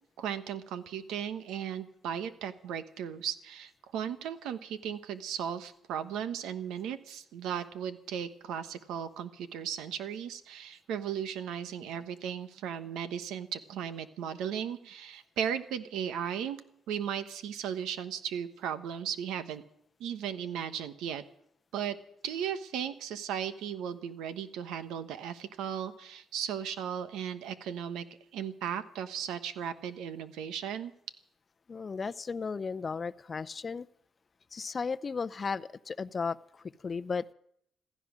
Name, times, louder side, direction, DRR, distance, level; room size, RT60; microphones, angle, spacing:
voice 1, 0.2-16.6 16.9-19.6 20.0-21.2 21.7-21.9 22.2-28.1 28.3-30.9, right 8 dB, 90° right, 11 dB, 1.1 m, -36 dB
voice 2, 31.7-33.9 34.5-37.3, left 5 dB, 35° left, 14 dB, 0.6 m, -35 dB
15.5 x 14.5 x 6.2 m, 0.71 s
cardioid pair, 90°, 0 cm